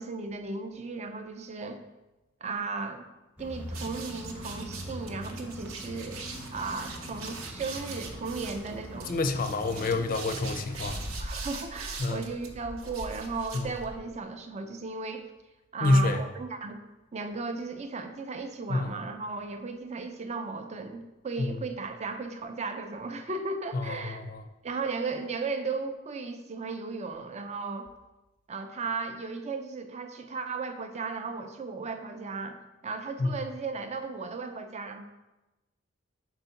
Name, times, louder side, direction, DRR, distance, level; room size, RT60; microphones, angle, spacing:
voice 1, 0.0-1.8 2.4-3.1 3.4-6.2 6.5-9.1 11.2-15.3 15.7-16.8 17.1-24.2 24.6-27.9 28.5-35.0, right 4 dB, 35° right, 7 dB, 0.5 m, -35 dB
sound 1, 3.4-11.1, equal, 5° right, 0.7 m, -42 dB
sound 2, 3.7-14.2, right 3 dB, 75° right, 0.8 m, -41 dB
voice 2, 9.1-11.0 12.0-12.2 13.5-13.7 15.8-16.2 18.7-18.9 21.4-21.5 23.7-24.4 33.2-33.3, left 2 dB, 45° left, 8 dB, 0.5 m, -27 dB
4.5 x 3.9 x 5.6 m, 1.0 s
head